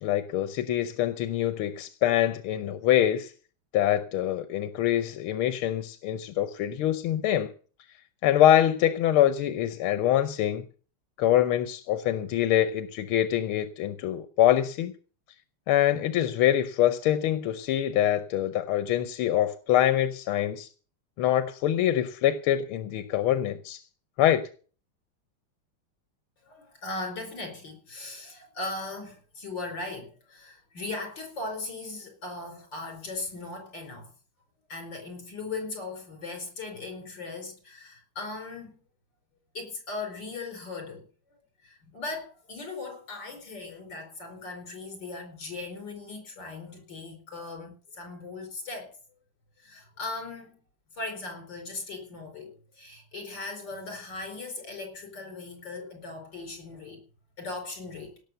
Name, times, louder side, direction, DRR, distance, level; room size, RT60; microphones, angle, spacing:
voice 1, 0.0-3.3 3.7-7.5 8.2-10.6 11.2-14.9 15.7-20.7 21.2-23.8 24.2-24.5, left 11 dB, 90° left, 1.7 m, -24 dB
voice 2, 26.4-34.1 34.7-38.8 39.5-41.0 41.6-48.9 49.6-50.6 50.9-57.0 57.4-58.1, left 3 dB, 60° left, 5.3 m, -38 dB
17.5 x 6.7 x 7.9 m
omnidirectional pair, 2.3 m